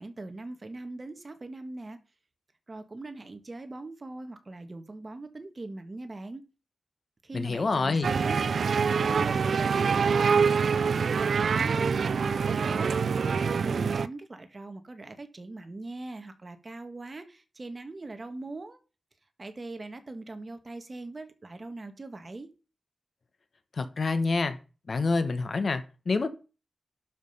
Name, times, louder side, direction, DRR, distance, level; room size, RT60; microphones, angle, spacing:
voice 1, 0.0-2.0 2.7-6.4 7.2-8.4 8.9-11.1 11.4-18.8 19.4-22.5, right 2 dB, 30° right, 1.4 m, -41 dB
voice 2, 7.3-8.1 23.7-24.6 24.9-26.3, left 3 dB, 50° left, 1.2 m, -27 dB
sound 1, 8.0-14.1, right 5 dB, 70° right, 0.4 m, -25 dB
11.5 x 5.1 x 5.5 m
wide cardioid pair, 135°, 0 cm